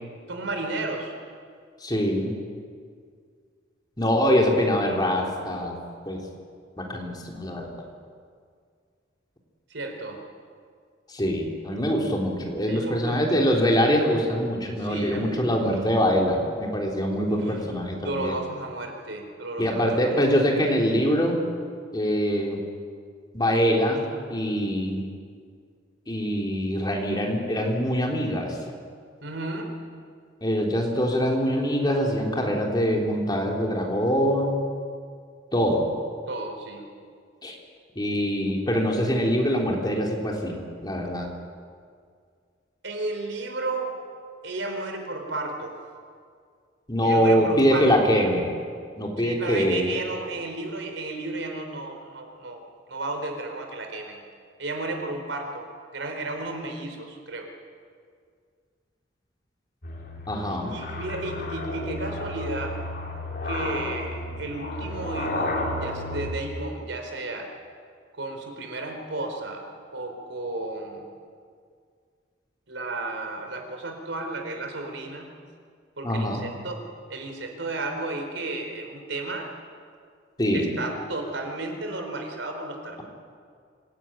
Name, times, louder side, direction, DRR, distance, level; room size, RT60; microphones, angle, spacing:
voice 1, 0.3-1.1 9.7-10.2 12.7-13.3 14.8-15.8 17.3-17.6 18.0-20.0 29.2-29.7 36.3-36.9 42.8-44.0 44.4-45.8 47.0-47.9 49.2-52.6 52.9-54.2 54.6-55.7 55.9-57.5 60.5-62.8 63.4-67.5 68.1-71.1 72.7-75.3 76.0-79.5 80.5-83.0, right 2 dB, 90° right, 3 dB, 4.3 m, -33 dB
voice 2, 1.8-2.3 4.0-5.8 6.1-6.2 6.8-7.9 11.1-18.4 19.6-21.4 21.9-22.6 23.3-25.1 26.1-28.6 30.4-34.6 35.5-35.9 37.4-37.6 38.0-41.3 46.9-48.5 49.0-49.9 60.3-60.7 76.0-76.4 80.4-80.7, equal, 20° left, 0 dB, 3.6 m, -24 dB
sound 1, 59.8-66.3, left 1 dB, 55° left, 3.6 m, -32 dB
26.0 x 17.5 x 9.1 m, 2.1 s
head